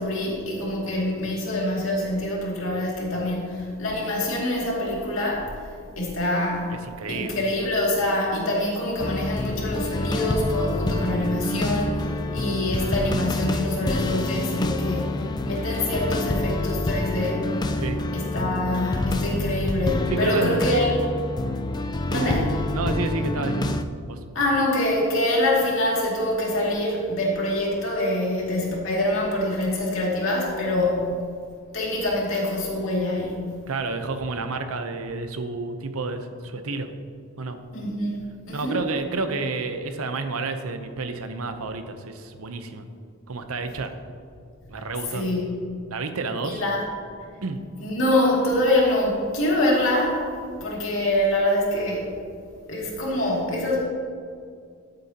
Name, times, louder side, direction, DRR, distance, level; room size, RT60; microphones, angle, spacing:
voice 1, 0.0-5.7 6.0-6.8 7.1-17.6 18.1-21.0 22.1-22.5 23.4-23.5 24.3-31.2 31.7-33.5 37.7-38.8 45.1-45.5 46.4-46.9 47.8-50.2 50.6-52.1 52.7-53.8, left 1 dB, 65° left, -4 dB, 2.4 m, -25 dB
voice 2, 6.7-7.4 17.8-18.0 20.1-20.6 22.1-24.2 33.7-36.9 37.4-37.6 38.5-42.9 43.3-43.9 44.7-45.3 45.9-46.6 47.4-47.6, right 3 dB, 80° right, 8 dB, 0.8 m, -30 dB
sound 1, 9.0-23.8, left 2 dB, 20° left, 0.3 m, -27 dB
13.0 x 7.8 x 2.9 m, 2.3 s
head